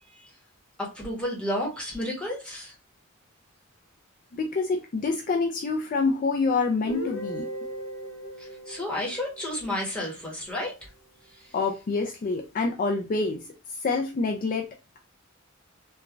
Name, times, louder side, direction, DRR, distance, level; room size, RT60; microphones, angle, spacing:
voice 1, 0.8-2.7 8.4-10.8, left 1 dB, 5° left, 1.1 m, -31 dB
voice 2, 4.3-7.5 11.5-13.5 13.8-14.7, left 4 dB, 40° left, 0.3 m, -27 dB
Guitar, 6.9-10.7, equal, 75° left, 0.7 m, -38 dB
3.0 x 2.3 x 2.4 m
head